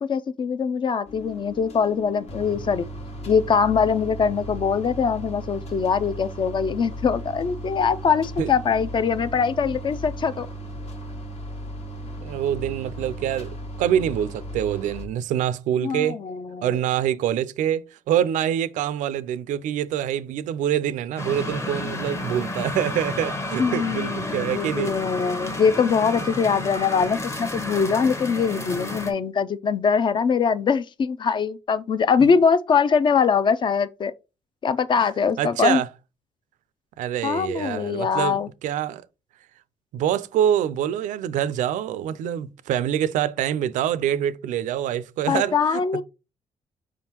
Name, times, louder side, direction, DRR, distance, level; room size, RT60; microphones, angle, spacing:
voice 1, 0.1-2.8 3.3-10.5 15.8-16.8 23.6-34.1 34.6-35.8 37.2-38.5 45.3-46.0, left 6 dB, 40° left, 0.4 m, -22 dB
sound 1, 1.0-15.1, right 1 dB, 55° left, 1.2 m, -36 dB
voice 2, 12.2-16.2 16.6-24.9 32.2-32.3 35.4-35.9 37.0-39.1 39.9-46.0, right 10 dB, 85° right, 0.4 m, -25 dB
sound 2, 21.2-29.1, left 2 dB, 20° left, 0.9 m, -31 dB
5.0 x 3.6 x 2.9 m
cardioid pair, 115°, 13 cm